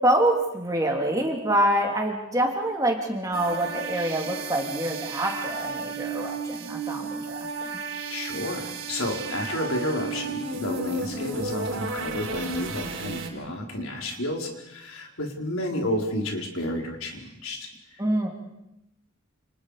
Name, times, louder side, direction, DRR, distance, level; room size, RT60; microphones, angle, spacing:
voice 1, 0.0-7.8 18.0-18.3, right 1 dB, 15° right, 1 dB, 3.2 m, -26 dB
sound 1, 3.3-13.3, right 4 dB, 60° right, 4.4 m, -33 dB
voice 2, 8.1-18.0, left 1 dB, 75° left, 1 dB, 4.6 m, -31 dB
29.5 x 28.5 x 5.1 m, 0.88 s
head